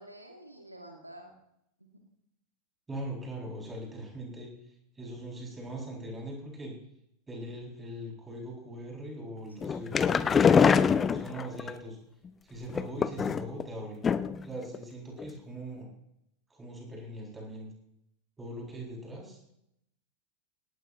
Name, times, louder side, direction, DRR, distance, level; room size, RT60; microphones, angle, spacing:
voice 1, 0.0-1.4 1.8-2.0 9.6-9.9, right 1 dB, 85° right, 3 dB, 2.1 m, -50 dB
voice 2, 2.9-4.5 5.0-6.7 7.3-10.3 10.9-12.0 12.5-14.0 14.4-15.9 16.5-17.7 18.4-19.4, right 1 dB, 10° right, -2 dB, 6.6 m, -41 dB
sound 1, 9.6-11.7 12.7-13.6 14.0-14.5 14.7-14.8 15.2-15.3, left 6 dB, 20° left, 0.6 m, -24 dB
18.0 x 17.5 x 3.1 m, 0.78 s
figure-of-eight pair, 90°, 0 cm